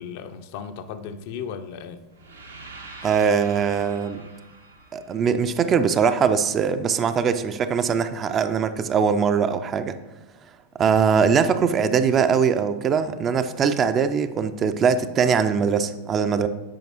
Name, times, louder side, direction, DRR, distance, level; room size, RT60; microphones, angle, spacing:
voice 1, 0.0-2.1, left 7 dB, 50° left, 9 dB, 0.5 m, -35 dB
sound 1, 2.1-6.2, right 3 dB, 75° right, 0.8 m, -44 dB
voice 2, 3.0-4.2 4.9-10.0 10.8-16.5, right 6 dB, 25° right, 10 dB, 0.4 m, -21 dB
8.8 x 5.1 x 2.9 m, 1.1 s
figure-of-eight pair, 90°, 0 cm